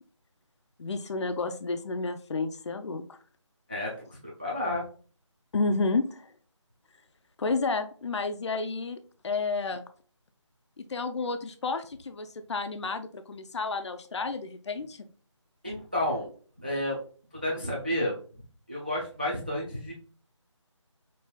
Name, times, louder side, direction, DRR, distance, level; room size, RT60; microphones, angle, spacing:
voice 1, 0.8-3.2 5.5-6.3 7.4-9.0 9.2-9.8 10.8-15.1, left 3 dB, 65° left, 8 dB, 0.4 m, -31 dB
voice 2, 3.7-4.8 15.6-16.3 16.6-17.0 17.3-18.2 18.7-19.9, left 1 dB, 20° right, -3 dB, 0.4 m, -31 dB
5.3 x 2.4 x 2.2 m, 0.42 s
figure-of-eight pair, 170°, 16 cm